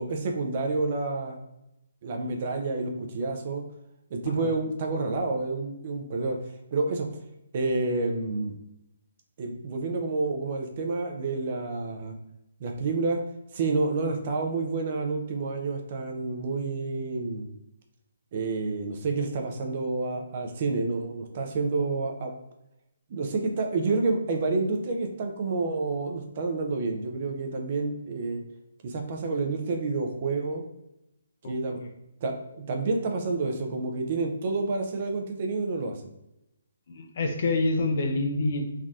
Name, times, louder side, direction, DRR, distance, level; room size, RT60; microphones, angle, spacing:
voice 1, 0.0-1.4 2.0-3.6 4.1-6.4 6.7-7.1 7.5-8.5 9.4-12.1 12.6-13.2 13.5-17.5 18.3-22.3 23.1-28.4 28.8-30.6 31.5-31.8 32.2-36.0, right 3 dB, 35° right, 3 dB, 0.4 m, -29 dB
voice 2, 31.4-31.9 36.9-38.6, left 2 dB, 40° left, 4 dB, 0.4 m, -27 dB
3.2 x 2.6 x 2.3 m, 0.86 s
hypercardioid pair, 170°, 0 cm